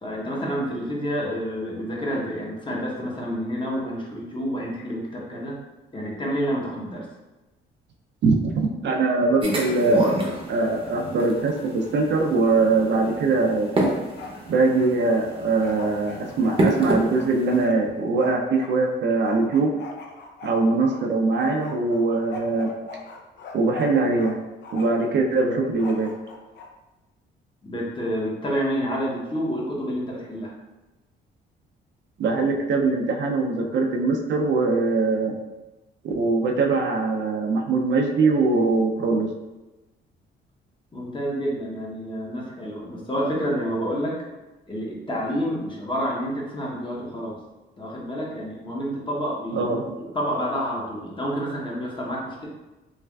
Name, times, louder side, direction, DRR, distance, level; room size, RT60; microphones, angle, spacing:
voice 1, 0.0-5.6 5.9-7.1 27.6-30.5 40.9-44.2 44.7-47.4 47.8-49.7 49.9-52.5, equal, 25° left, -3 dB, 0.8 m, -29 dB
voice 2, 8.2-10.2 10.5-13.7 14.5-19.7 20.4-22.7 23.5-24.4 24.7-26.1 32.2-35.3 36.0-39.3 49.5-49.8, right 3 dB, 60° right, 1 dB, 0.5 m, -22 dB
sound 1, 9.4-17.7, right 1 dB, 25° right, 0.7 m, -29 dB
Bark, 13.9-14.4 14.7-18.7 19.2-21.0 21.4-24.3 24.6-25.1 25.8-26.7, left 4 dB, 65° left, 0.5 m, -41 dB
3.3 x 2.4 x 2.3 m, 1.1 s
cardioid pair, 90°, 20 cm